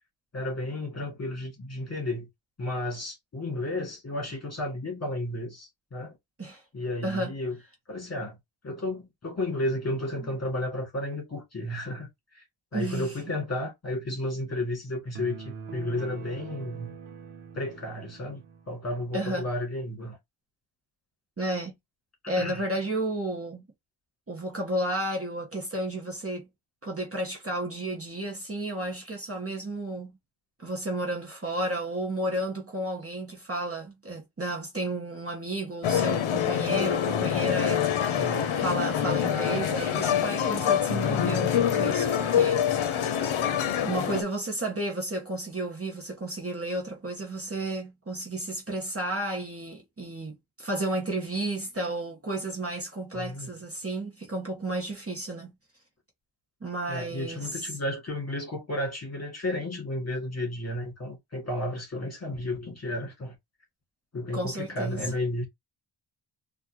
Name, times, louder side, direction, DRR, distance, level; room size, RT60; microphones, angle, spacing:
voice 1, 0.3-2.3 2.6-6.2 6.7-7.6 7.9-8.4 8.6-12.4 12.7-16.9 17.5-20.2 22.2-22.6 38.1-38.6 53.1-53.5 56.9-63.4 64.1-65.4, left 1 dB, 30° left, 2.0 m, -33 dB
voice 2, 12.7-13.2 19.1-19.5 21.4-21.7 22.3-23.7 24.3-26.5 26.8-30.2 30.6-43.1 43.8-55.5 56.6-57.6 64.3-65.0, right 1 dB, 30° right, 1.1 m, -32 dB
sound 1, 15.1-18.7, right 6 dB, 70° right, 0.9 m, -43 dB
sound 2, 35.8-44.2, left 9 dB, 70° left, 0.7 m, -25 dB
4.2 x 2.6 x 2.9 m
wide cardioid pair, 135°, 50 cm